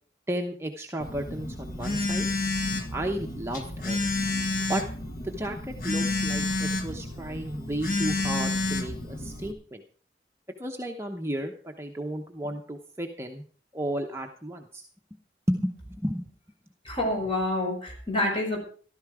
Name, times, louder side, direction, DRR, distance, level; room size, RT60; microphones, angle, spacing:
voice 1, 0.3-2.3 2.9-4.0 4.7-4.8 5.2-9.8 10.6-13.4 13.7-14.8 15.5-16.3, right 1 dB, 15° right, 2 dB, 0.9 m, -33 dB
Telephone, 1.0-9.5, left 2 dB, 50° left, 1.8 m, -30 dB
voice 2, 16.9-18.6, left 1 dB, 30° left, 1 dB, 5.7 m, -27 dB
14.5 x 12.5 x 4.9 m, 0.44 s
head